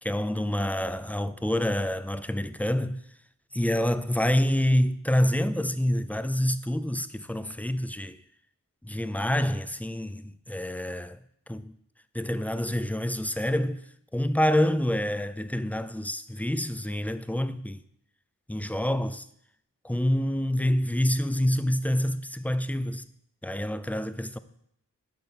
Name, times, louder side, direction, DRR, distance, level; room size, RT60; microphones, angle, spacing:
voice 1, 0.0-3.0 3.5-8.2 8.8-11.2 11.5-11.8 12.1-13.8 14.1-17.8 18.5-19.3 19.8-23.1 23.4-24.4, left 1 dB, 5° left, 0.4 m, -27 dB
8.2 x 5.7 x 5.6 m
wide cardioid pair, 85°, 32 cm